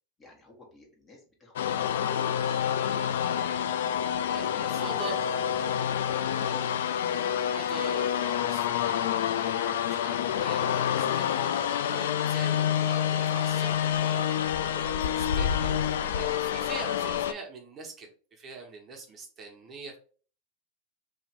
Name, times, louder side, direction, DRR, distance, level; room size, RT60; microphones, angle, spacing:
voice 1, 0.2-4.1 5.1-5.9 6.3-6.7 15.0-15.3, left 3 dB, 25° left, -1 dB, 1.5 m, -50 dB
sound 1, 1.6-17.3, left 9 dB, 80° left, 0.3 m, -28 dB
voice 2, 4.3-5.2 7.5-9.0 9.3-15.7 16.2-20.0, right 3 dB, 35° right, 1 dB, 1.1 m, -43 dB
2.9 x 2.8 x 4.4 m, 0.42 s
hypercardioid pair, 105°, 0 cm